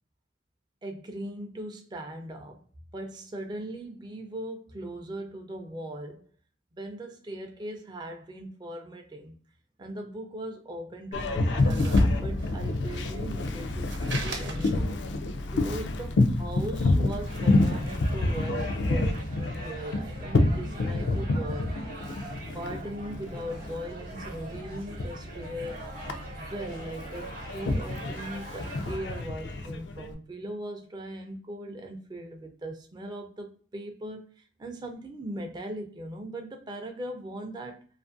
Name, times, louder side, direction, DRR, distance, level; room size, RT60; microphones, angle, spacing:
voice 1, 0.8-2.6 2.9-6.3 6.7-9.3 9.8-15.0 15.5-21.7 22.1-25.8 26.4-37.9, right 1 dB, 25° right, 0.4 m, -39 dB
Boat Water vehicle, 11.1-30.1, left 2 dB, 80° left, 0.4 m, -28 dB
sound 1, 11.6-12.7 13.0-15.1 15.5-16.8 17.1-17.5 17.8-17.9, right 3 dB, 85° right, 0.8 m, -40 dB
sound 2, 17.3-29.2, right 2 dB, 45° right, 0.8 m, -44 dB
2.5 x 2.4 x 2.4 m
head